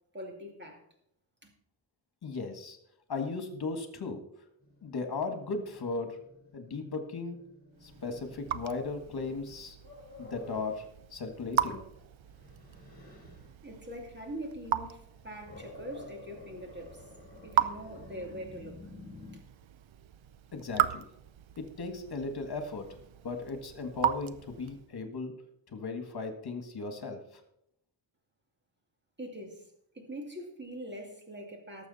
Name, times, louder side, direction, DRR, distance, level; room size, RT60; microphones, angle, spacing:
voice 1, 0.1-0.8 1.4-1.5 13.6-17.0 17.4-18.8 19.3-19.4 29.2-29.7 29.9-31.9, equal, 25° right, 2 dB, 2.3 m, -43 dB
voice 2, 2.2-2.8 3.1-4.2 4.8-6.2 6.5-7.4 7.8-9.8 10.2-10.9 11.1-11.9 20.5-21.1 21.6-22.9 23.2-25.3 25.7-27.4, left 3 dB, 55° left, 6 dB, 1.8 m, -36 dB
Growling, 4.6-10.7 11.2-13.5 14.9-19.4, left 2 dB, 20° left, 4.0 m, -52 dB
Raindrop / Drip, 7.8-24.9, right 10 dB, 80° right, 0.7 m, -37 dB
18.5 x 7.3 x 4.2 m, 0.74 s
wide cardioid pair, 160°, 46 cm